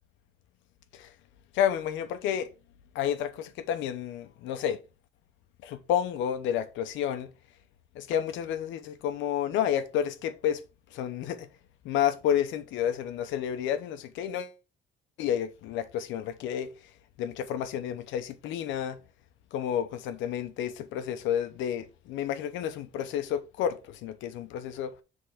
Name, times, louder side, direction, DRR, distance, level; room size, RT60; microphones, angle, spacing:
voice 1, 1.5-2.5 2.9-4.8 5.6-7.3 8.0-10.6 10.9-11.5 11.8-14.5 15.2-16.7 17.2-19.0 19.5-24.9, left 9 dB, 90° left, 0.8 m, -30 dB
5.7 x 3.6 x 4.9 m
cardioid pair, 110°, 19 cm